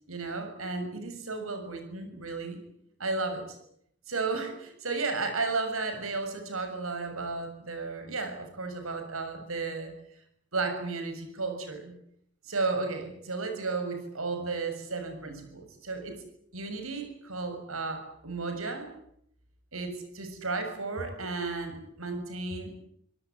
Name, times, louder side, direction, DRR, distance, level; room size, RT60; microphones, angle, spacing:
voice 1, 0.1-2.6 3.0-3.6 4.1-9.9 10.5-11.9 12.4-16.2 16.5-18.9 19.7-22.7, right 3 dB, 75° right, 6 dB, 6.8 m, -33 dB
26.0 x 18.0 x 9.5 m, 0.72 s
head